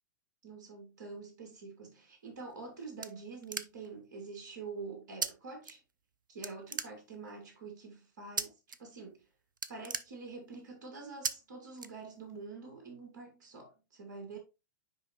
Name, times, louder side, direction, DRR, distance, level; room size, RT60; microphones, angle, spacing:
voice 1, 0.4-5.8 6.3-9.2 9.7-14.4, right 4 dB, 65° right, 2.1 m, -46 dB
sound 1, 2.3-4.0 5.2-5.3 5.6-6.1 6.4-7.4 8.4-8.8 9.1-9.2 9.5-10.7 11.2-11.3 11.8-12.4, right 5 dB, 85° right, 0.5 m, -38 dB
9.8 x 3.4 x 2.9 m
figure-of-eight pair, 100°, 10 cm